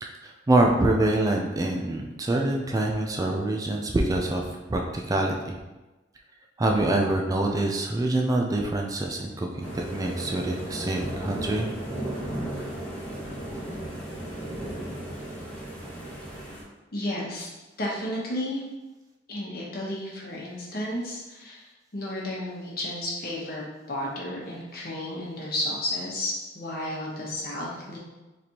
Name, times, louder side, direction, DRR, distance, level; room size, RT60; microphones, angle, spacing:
voice 1, 0.2-5.6 6.6-11.7, right 2 dB, 20° right, 1 dB, 0.4 m, -25 dB
sound 1, 9.6-16.6, right 1 dB, 10° left, 1.0 m, -35 dB
voice 2, 16.9-17.5 17.8-18.6 19.3-21.7 21.9-28.0, left 1 dB, 60° left, -4 dB, 1.1 m, -32 dB
4.1 x 3.2 x 2.9 m, 1.1 s
head